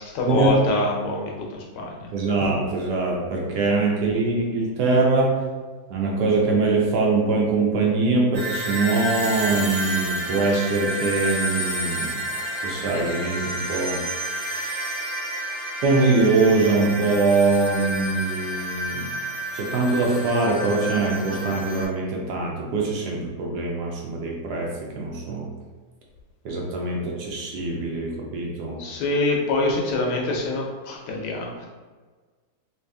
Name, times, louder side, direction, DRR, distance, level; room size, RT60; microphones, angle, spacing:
voice 1, 0.1-2.1 28.8-31.7, left 2 dB, 75° left, 0 dB, 1.2 m, -25 dB
voice 2, 2.1-5.4 5.9-12.1 12.6-14.0 15.8-19.1 19.5-25.5 26.4-28.8, right 3 dB, 70° right, -1 dB, 1.2 m, -23 dB
sound 1, 8.3-21.8, right 1 dB, 35° right, 1.2 m, -30 dB
3.2 x 2.8 x 3.3 m, 1.4 s
omnidirectional pair, 1.9 m